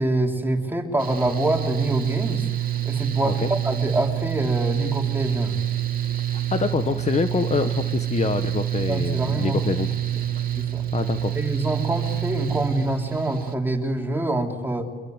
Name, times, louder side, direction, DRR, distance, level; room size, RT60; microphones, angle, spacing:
voice 1, 0.0-2.4 2.8-5.6 8.9-9.6 10.5-10.9 11.3-14.9, right 1 dB, 10° right, 1 dB, 3.6 m, -25 dB
Mechanical fan, 1.0-13.5, right 12 dB, 45° right, 2.4 m, -27 dB
voice 2, 6.5-9.9 10.9-11.3, left 5 dB, 35° left, 9 dB, 1.1 m, -25 dB
23.5 x 23.0 x 8.0 m, 1.5 s
cardioid pair, 90°, 20 cm